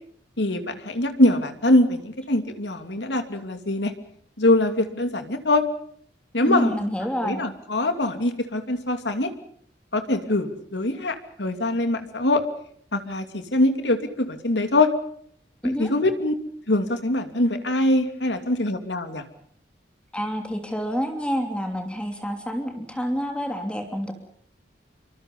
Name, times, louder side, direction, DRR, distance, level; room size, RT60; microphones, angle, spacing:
voice 1, 0.4-3.9 4.4-5.6 6.3-6.7 7.2-9.3 9.9-12.4 12.9-14.9 15.8-16.3 16.7-19.2, left 1 dB, 75° left, 7 dB, 2.8 m, -23 dB
voice 2, 6.4-7.4 15.6-15.9 20.1-24.1, equal, 5° left, 4 dB, 3.1 m, -27 dB
27.0 x 25.0 x 5.5 m, 0.63 s
head